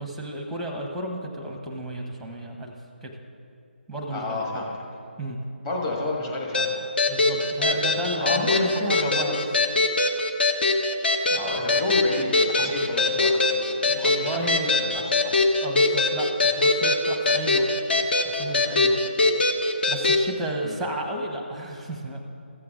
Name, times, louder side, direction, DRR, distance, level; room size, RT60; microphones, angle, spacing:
voice 1, 0.0-2.7 3.0-3.2 3.9-4.6 5.2-5.4 7.1-9.4 11.3-12.0 12.6-12.7 13.9-14.8 15.6-17.7 18.1-19.0 19.9-22.2, right 1 dB, ahead, 0 dB, 0.9 m, -32 dB
voice 2, 4.1-4.7 5.6-6.8 7.7-9.4 11.3-14.4 14.7-15.4 20.6-20.8, left 2 dB, 25° left, -3 dB, 1.8 m, -31 dB
sound 1, 6.5-20.2, left 2 dB, 60° left, 1.0 m, -22 dB
14.5 x 7.6 x 3.8 m, 2.5 s
figure-of-eight pair, 160°, 6 cm